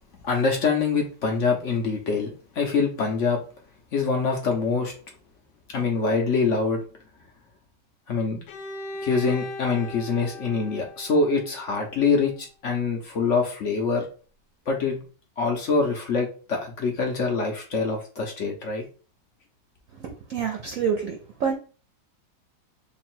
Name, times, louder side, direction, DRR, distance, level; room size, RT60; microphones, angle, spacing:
voice 1, 0.2-3.4 3.9-4.9 5.7-6.8 8.1-8.4 9.0-14.0 14.7-15.0 15.4-18.8, left 4 dB, 60° left, 2 dB, 0.8 m, -25 dB
Bowed string instrument, 8.5-12.3, left 2 dB, 85° left, 1.3 m, -38 dB
voice 2, 20.0-21.5, right 6 dB, 65° right, 2 dB, 0.9 m, -27 dB
3.2 x 2.3 x 4.3 m, 0.38 s
omnidirectional pair, 1.9 m